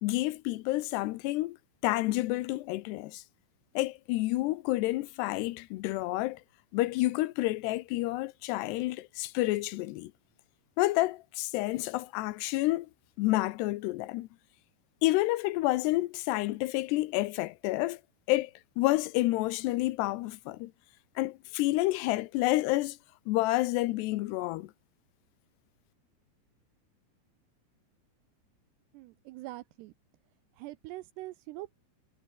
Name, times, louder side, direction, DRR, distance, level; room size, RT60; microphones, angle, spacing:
voice 1, 0.0-1.6 1.8-3.2 3.8-6.4 6.7-10.1 10.8-12.9 13.2-14.3 15.0-18.0 18.3-18.5 18.8-20.7 21.2-23.0 23.3-24.7, left 18 dB, 75° left, 2.6 m, -29 dB
voice 2, 28.9-29.9 30.6-31.8, right 18 dB, 85° right, 2.5 m, -43 dB
omnidirectional pair, 5.4 m